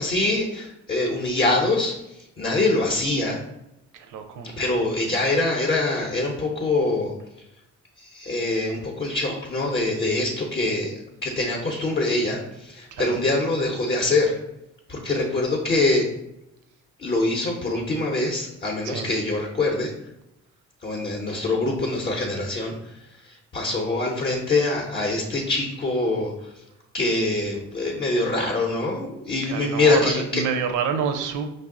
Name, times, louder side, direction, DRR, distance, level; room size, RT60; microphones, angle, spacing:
voice 1, 0.0-3.4 4.6-7.1 8.0-14.4 14.9-16.1 17.0-19.9 20.8-23.0 23.2-26.5 26.9-30.4, left 2 dB, 30° left, 0 dB, 0.7 m, -24 dB
voice 2, 3.9-4.6 12.9-13.2 18.8-19.1 29.4-31.5, right 6 dB, 85° right, 7 dB, 0.6 m, -28 dB
5.2 x 2.0 x 3.6 m, 0.86 s
cardioid pair, 90°, 30 cm